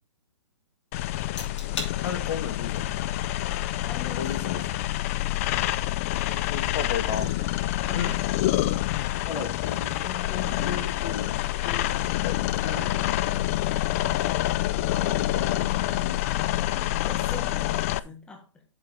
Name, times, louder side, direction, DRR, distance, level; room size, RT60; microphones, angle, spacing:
sound 1, 0.9-18.0, left 15 dB, 30° left, 0.3 m, -27 dB
sound 2, 1.4-1.9 2.4-2.8 4.3-4.4 7.0-7.6 7.8-8.2 9.0-10.0 10.6-12.1 12.5-13.0 13.5-13.6, left 4 dB, 70° left, 3.9 m, -36 dB
voice 1, 2.0-3.0 4.2-4.7 6.1-7.4 10.0-11.0 11.9-12.9 14.9-16.2, left 7 dB, 55° left, 2.0 m, -35 dB
voice 2, 3.9-4.5 7.9-8.3 17.0-18.6, left 3 dB, 5° left, 1.2 m, -42 dB
7.6 x 4.7 x 6.2 m
hypercardioid pair, 150°, 16 cm